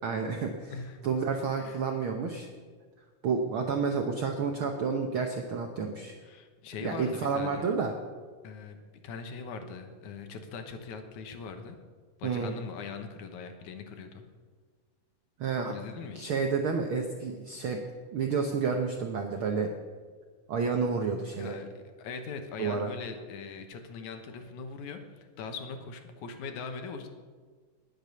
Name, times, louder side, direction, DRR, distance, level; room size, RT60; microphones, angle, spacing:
voice 1, 0.0-0.7 1.0-2.5 3.2-6.1 6.8-7.9 12.2-12.6 15.4-15.7 16.1-17.8 18.1-19.7 20.5-21.6 22.6-22.9, right 5 dB, 70° right, 3 dB, 1.2 m, -30 dB
voice 2, 0.7-1.0 1.6-1.8 6.2-7.7 8.4-11.8 12.2-14.3 15.6-16.3 21.4-27.1, left 5 dB, 75° left, 6 dB, 2.5 m, -41 dB
20.0 x 6.8 x 6.8 m, 1.5 s
omnidirectional pair, 3.6 m